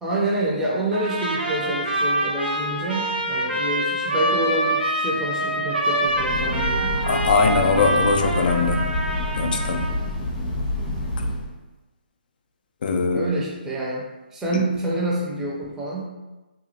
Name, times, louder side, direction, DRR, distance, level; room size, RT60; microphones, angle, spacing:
voice 1, 0.0-6.9 13.1-16.1, right 2 dB, 10° right, -4 dB, 0.5 m, -27 dB
Trumpet, 0.9-10.0, right 1 dB, 85° right, 0.8 m, -25 dB
Breathing / Train, 6.0-11.6, left 1 dB, 40° left, 0.8 m, -27 dB
voice 2, 7.0-8.9 9.3-9.9 12.8-13.3, left 4 dB, 55° left, 5 dB, 0.4 m, -21 dB
2.9 x 2.3 x 2.7 m, 1.1 s
hypercardioid pair, 145°, 6 cm